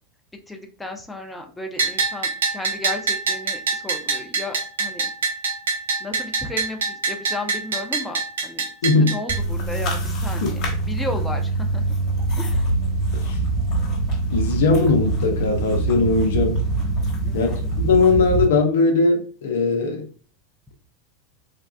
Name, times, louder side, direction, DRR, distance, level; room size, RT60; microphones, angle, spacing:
voice 1, 0.5-5.1 6.0-11.8 12.4-12.7 17.2-17.6, left 1 dB, 10° left, 0.6 m, -34 dB
Bell, 1.8-9.4, right 4 dB, 85° right, 0.6 m, -25 dB
voice 2, 8.8-9.2 13.1-13.4 14.3-16.6 17.3-20.1, left 3 dB, 75° left, 0.6 m, -19 dB
sound 1, 9.3-18.4, right 2 dB, 50° left, 1.2 m, -24 dB
3.4 x 2.4 x 2.2 m
hypercardioid pair, 95°, 0 cm